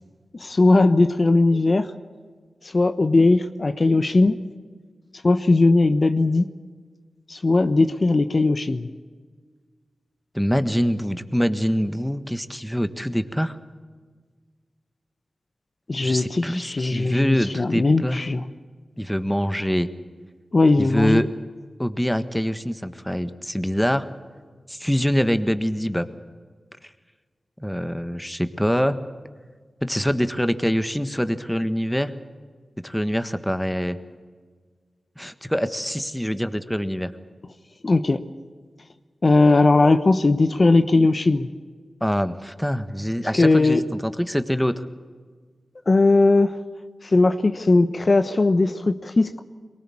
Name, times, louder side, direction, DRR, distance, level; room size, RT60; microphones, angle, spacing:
voice 1, 0.3-1.9 2.7-4.4 5.2-6.5 7.3-8.9 15.9-18.4 20.5-21.2 37.8-38.2 39.2-41.5 43.4-43.8 45.9-46.5 47.0-49.4, left 2 dB, 50° left, 10 dB, 1.0 m, -18 dB
voice 2, 10.3-13.6 16.0-18.2 19.0-19.9 20.8-21.3 21.8-24.1 24.7-26.1 27.6-29.0 29.8-32.1 32.8-34.0 35.2-37.1 42.0-44.8, equal, 5° left, 10 dB, 1.5 m, -24 dB
23.0 x 18.5 x 8.6 m, 1.5 s
cardioid pair, 45°, 0 cm